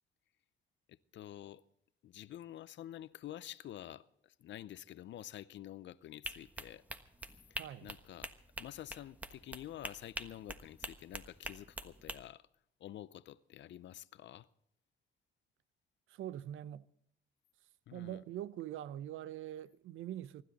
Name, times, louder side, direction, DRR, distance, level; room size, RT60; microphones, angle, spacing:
voice 1, 0.9-1.6 2.0-6.8 7.5-8.3 8.6-12.5 12.8-14.5 17.9-18.2, left 12 dB, 65° left, 0.6 m, -49 dB
sound 1, 6.2-12.2, right 1 dB, 10° right, 1.3 m, -45 dB
voice 2, 7.6-8.0 16.1-16.9 17.9-20.4, right 12 dB, 80° right, 0.7 m, -43 dB
24.5 x 12.5 x 4.1 m
cardioid pair, 90°, 20 cm